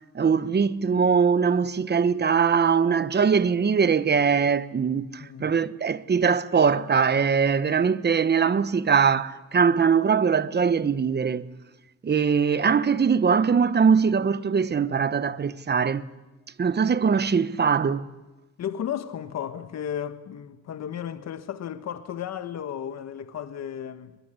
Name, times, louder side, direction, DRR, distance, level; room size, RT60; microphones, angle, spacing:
voice 1, 0.1-11.5 12.0-16.0 16.6-18.1, right 6 dB, 35° right, 1.1 m, -22 dB
voice 2, 5.2-5.5 18.6-24.2, left 9 dB, 60° left, 1.4 m, -34 dB
22.5 x 21.5 x 9.8 m
cardioid pair, 90°, 30 cm